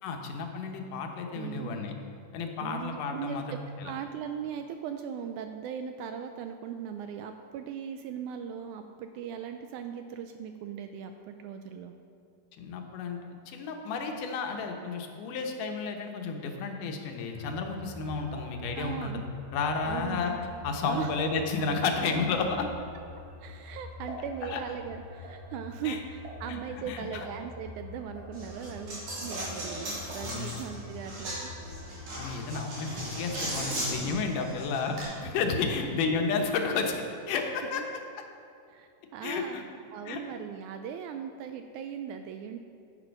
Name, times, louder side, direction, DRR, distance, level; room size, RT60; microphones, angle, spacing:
voice 1, 0.0-1.9 2.3-3.9 12.6-13.2 13.5-19.2 19.5-20.4 20.6-22.7 24.4-24.6 25.8-26.0 26.5-26.6 26.9-27.3 30.2-30.6 32.2-35.0 35.2-37.0 37.3-37.8 39.2-39.6 40.0-40.2, left 4 dB, 75° left, 3 dB, 2.5 m, -32 dB
voice 2, 1.3-1.8 2.6-11.9 18.7-19.2 19.8-20.2 20.8-21.3 23.4-31.5 35.5-35.6 37.6-37.9 38.7-39.6 39.9-42.6, right 8 dB, 80° right, 7 dB, 1.8 m, -39 dB
sound 1, 17.3-32.2, left 3 dB, 15° right, 3.0 m, -46 dB
sound 2, 18.2-20.3 20.7-24.6 24.9-32.2 32.5-33.1 33.5-35.3 35.5-36.6 36.9-37.0 37.2-37.3, equal, 45° right, 2.1 m, -48 dB
Coin (dropping), 28.3-35.0, right 1 dB, 60° right, 4.4 m, -37 dB
10.5 x 9.0 x 5.2 m, 2.5 s
omnidirectional pair, 3.8 m